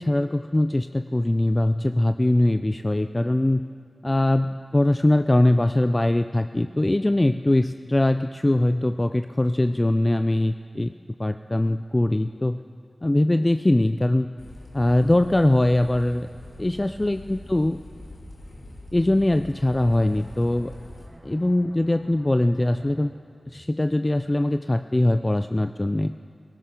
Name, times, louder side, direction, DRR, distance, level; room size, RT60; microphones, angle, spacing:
voice 1, 0.0-3.7 4.0-10.9 11.2-12.6 13.0-14.3 14.7-16.3 16.6-17.8 18.9-20.7 21.2-23.1 23.5-26.1, left 1 dB, 25° left, 9 dB, 0.3 m, -22 dB
sound 1, 14.4-21.1, left 1 dB, 80° left, 2.3 m, -43 dB
sound 2, 19.5-24.9 25.2-25.4, equal, 20° right, 2.1 m, -52 dB
18.0 x 17.0 x 3.7 m, 2.3 s
wide cardioid pair, 75°, 0 cm